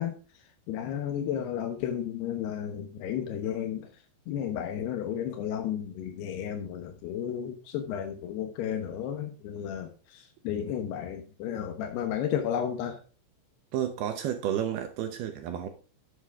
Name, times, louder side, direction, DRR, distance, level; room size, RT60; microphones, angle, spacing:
voice 1, 0.0-13.0, left 9 dB, 70° left, 2.9 m, -33 dB
voice 2, 13.7-15.7, right 10 dB, 70° right, 2.6 m, -31 dB
11.5 x 8.2 x 3.7 m
omnidirectional pair, 5.2 m